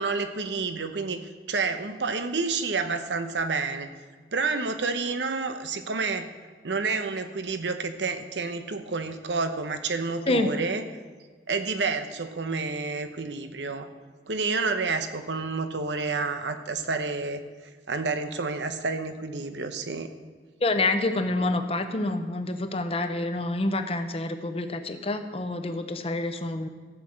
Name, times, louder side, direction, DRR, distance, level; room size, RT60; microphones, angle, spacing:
voice 1, 0.0-3.9 4.3-6.3 6.6-10.8 11.5-13.9 14.3-17.4 17.9-20.1, right 4 dB, 85° right, 8 dB, 0.9 m, -29 dB
voice 2, 20.6-26.7, left 2 dB, 35° left, 8 dB, 0.7 m, -27 dB
13.5 x 6.0 x 7.7 m, 1.5 s
head